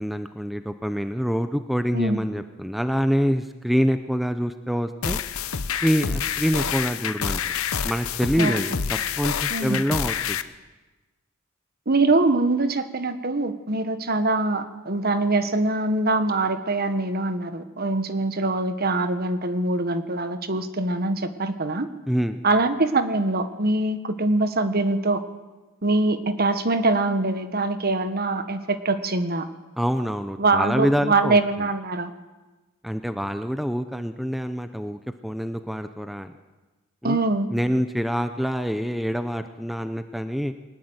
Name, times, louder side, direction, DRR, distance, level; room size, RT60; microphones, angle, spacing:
voice 1, 0.0-5.2 5.8-7.5 7.8-10.4 22.1-22.4 29.8-31.4 32.8-36.3 37.0-37.2 37.5-40.5, equal, ahead, 9 dB, 0.7 m, -26 dB
voice 2, 1.9-2.2 8.4-8.6 9.5-9.8 11.9-21.9 22.4-25.2 25.8-29.5 30.4-32.1 37.0-37.5, right 2 dB, 45° right, 10 dB, 1.4 m, -23 dB
sound 1, 5.0-10.4, left 7 dB, 80° left, 0.9 m, -27 dB
21.0 x 19.5 x 8.1 m, 1.2 s
head